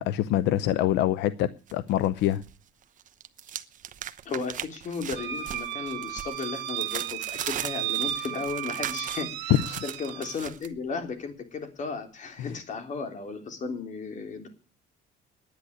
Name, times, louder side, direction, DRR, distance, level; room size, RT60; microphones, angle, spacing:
voice 1, 0.0-2.4 9.5-9.8 12.4-12.5, left 12 dB, 85° left, 0.6 m, -25 dB
sound 1, 1.7-2.6 2.8-10.7, right 10 dB, 50° right, 1.0 m, -38 dB
voice 2, 4.3-14.5, left 4 dB, 45° left, 3.5 m, -35 dB
sound 2, 5.2-10.4, right 12 dB, 80° right, 1.6 m, -34 dB
10.5 x 9.8 x 9.8 m
cardioid pair, 110°, 17 cm